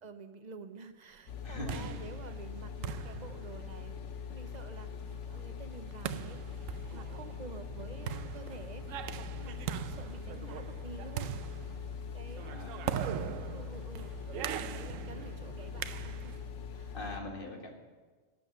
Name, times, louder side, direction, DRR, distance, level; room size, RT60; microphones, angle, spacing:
voice 1, 0.0-4.0 4.3-4.9 5.3-6.6 6.9-8.9 9.2-11.4 12.1-12.5 13.5-14.1 14.5-16.4 16.7-16.9, right 4 dB, 45° right, 10 dB, 0.7 m, -49 dB
sound 1, 1.3-17.2, left 7 dB, 70° left, 1.1 m, -43 dB
sound 2, 1.3-16.5, right 10 dB, 85° right, 1.0 m, -41 dB
voice 2, 1.4-2.0 12.4-13.5 16.9-17.7, left 1 dB, 45° left, 2 dB, 1.9 m, -42 dB
12.0 x 7.3 x 8.0 m, 1.4 s
omnidirectional pair, 1.3 m